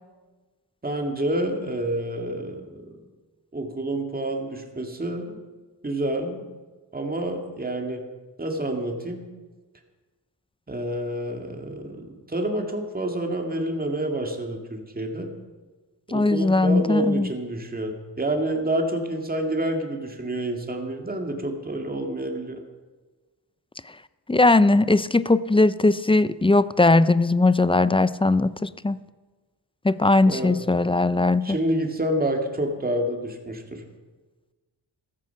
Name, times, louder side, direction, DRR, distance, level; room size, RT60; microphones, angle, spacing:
voice 1, 0.8-2.9 3.5-5.4 5.8-6.4 6.9-8.0 8.4-9.2 10.7-15.3 16.1-22.6 30.3-30.6 31.4-33.8, right 1 dB, 20° right, 3 dB, 2.2 m, -28 dB
voice 2, 16.1-17.3 24.3-29.0 29.8-31.6, left 2 dB, 15° left, 16 dB, 0.4 m, -19 dB
14.5 x 13.5 x 5.8 m, 1.3 s
wide cardioid pair, 105°, 42 cm